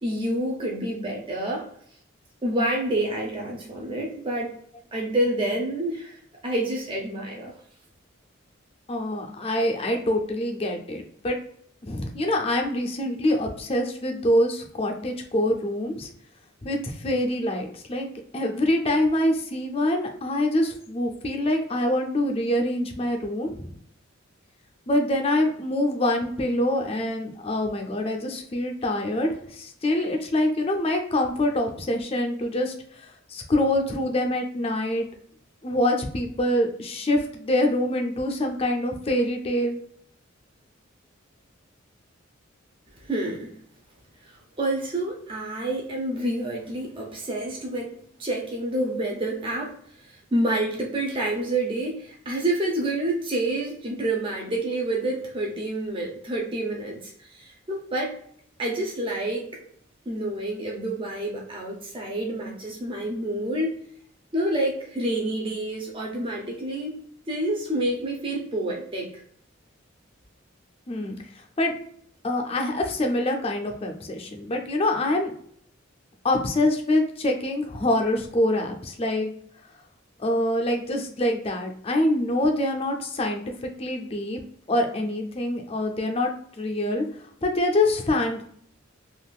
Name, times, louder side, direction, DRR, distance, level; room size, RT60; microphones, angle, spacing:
voice 1, 0.0-1.7 2.4-4.5 4.9-6.2 6.4-7.5 43.0-43.5 44.6-47.9 48.2-49.7 50.0-58.1 58.6-59.6 60.1-63.7 64.3-67.0 67.3-69.1, right 1 dB, 25° right, -1 dB, 0.6 m, -28 dB
voice 2, 8.9-11.4 11.8-16.1 16.6-18.1 18.3-23.7 24.9-32.7 33.3-35.1 35.6-39.8 70.9-71.2 71.6-71.7 72.2-75.3 76.2-79.3 80.2-84.4 84.7-87.1 87.4-88.4, left 1 dB, 30° left, 3 dB, 0.5 m, -25 dB
3.5 x 2.5 x 2.3 m, 0.64 s
head